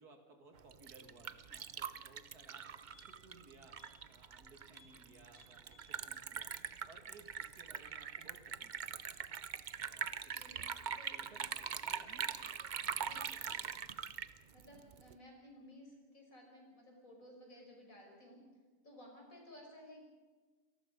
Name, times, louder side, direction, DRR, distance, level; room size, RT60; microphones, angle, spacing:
voice 1, 0.0-2.7 2.9-3.8 4.1-6.5 6.8-9.0 9.8-10.8 11.1-12.4, right 3 dB, 80° right, 4 dB, 3.0 m, -61 dB
Liquid, 0.6-15.1, right 7 dB, 55° right, 0.5 m, -43 dB
sound 1, 2.2-2.3 2.5-3.3 3.7-4.0 4.3-4.4 4.7-5.0 5.3-6.0 6.4-6.5, left 1 dB, 15° left, 4.0 m, -65 dB
voice 2, 10.2-11.2 13.0-13.7 14.5-18.4 18.8-20.0, left 1 dB, 60° left, 0 dB, 6.0 m, -57 dB
28.0 x 18.5 x 5.4 m, 1.4 s
omnidirectional pair, 1.6 m